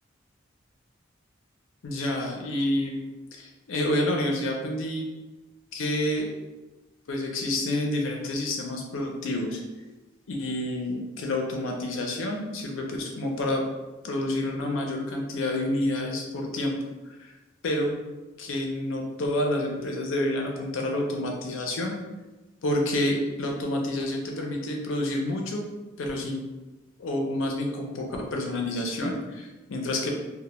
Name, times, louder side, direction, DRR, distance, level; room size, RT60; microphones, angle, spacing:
voice 1, 1.8-5.1 5.7-6.3 7.1-9.6 10.3-13.7 14.0-16.8 17.2-17.3 17.6-18.0 18.4-22.0 22.6-25.7 26.0-26.4 27.0-30.1, left 1 dB, 75° left, 1 dB, 0.5 m, -28 dB
2.1 x 2.0 x 2.9 m, 1.1 s
head